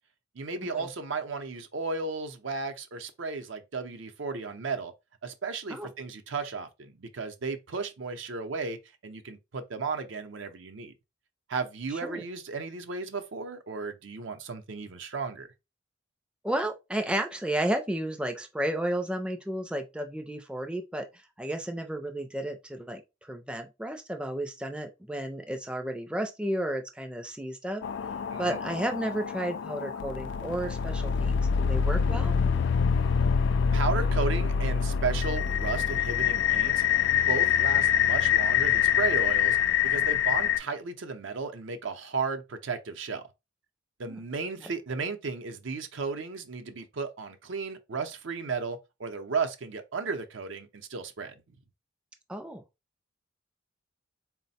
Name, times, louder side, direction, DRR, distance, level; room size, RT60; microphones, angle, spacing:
voice 1, 0.3-4.9 5.2-8.8 9.0-10.9 11.5-15.5 28.3-28.6 33.7-36.8 37.1-39.6 39.8-43.2 44.0-51.6, right 4 dB, 65° right, 0.6 m, -34 dB
voice 2, 11.9-12.2 16.4-23.0 23.3-27.8 28.4-32.3 44.1-44.2 44.6-44.7 52.3-52.6, right 1 dB, 5° right, 0.4 m, -32 dB
sound 1, 27.8-40.6, left 8 dB, 60° left, 0.3 m, -25 dB
4.0 x 2.1 x 4.1 m
head